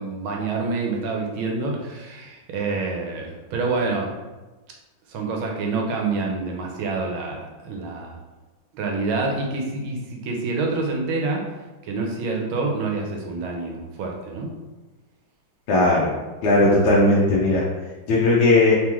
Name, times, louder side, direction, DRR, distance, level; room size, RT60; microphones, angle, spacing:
voice 1, 0.0-4.1 5.1-8.2 8.7-11.4 11.8-14.5, right 3 dB, 90° right, 0 dB, 1.6 m, -27 dB
voice 2, 15.7-16.1 16.4-17.6 18.1-18.8, left 2 dB, 65° left, -5 dB, 1.2 m, -17 dB
3.7 x 3.0 x 3.5 m, 1.2 s
omnidirectional pair, 2.2 m